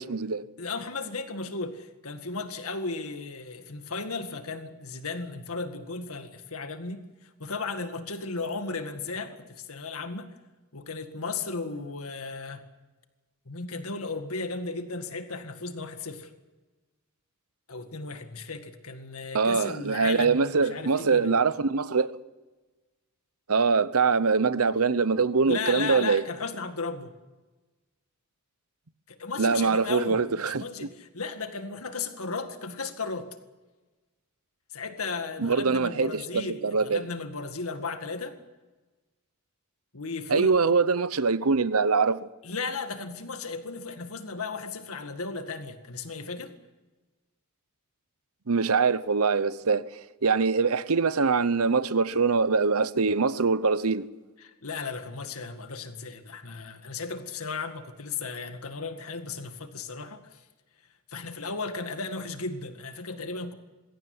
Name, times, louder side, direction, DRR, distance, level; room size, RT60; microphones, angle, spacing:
voice 1, 0.0-0.4 19.3-22.1 23.5-26.2 29.4-30.6 35.4-37.1 40.3-42.3 48.5-49.8 50.2-54.1, right 4 dB, 75° right, 0.9 m, -23 dB
voice 2, 0.6-10.3 10.7-12.6 13.5-16.3 17.7-21.3 25.5-27.1 29.1-33.3 34.7-38.4 39.9-40.7 42.4-46.5 54.4-60.5 61.1-63.5, left 4 dB, 75° left, 1.9 m, -35 dB
22.0 x 17.0 x 9.6 m
head